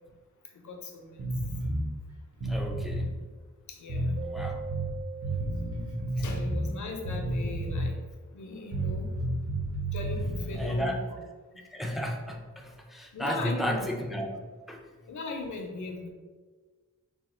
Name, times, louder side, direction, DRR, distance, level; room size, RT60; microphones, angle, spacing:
voice 1, 0.4-1.2 1.5-1.6 3.7-4.2 6.1-8.0 8.3-9.3 9.9-11.0 11.5-11.6 13.1-13.9 15.1-16.1, left 3 dB, 80° left, 2 dB, 0.7 m, -38 dB
sound 1, 1.2-1.9 2.3-3.1 3.9-4.9 5.2-6.7 7.0-8.0 8.7-10.8, right 1 dB, 55° right, 1.0 m, -31 dB
voice 2, 2.4-3.2 4.2-4.7 10.6-11.1 11.6-14.8, equal, ahead, 1 dB, 0.3 m, -33 dB
Keyboard (musical), 4.2-6.9, right 5 dB, 80° right, 0.5 m, -43 dB
3.5 x 2.3 x 4.2 m, 1.4 s
wide cardioid pair, 175°, 29 cm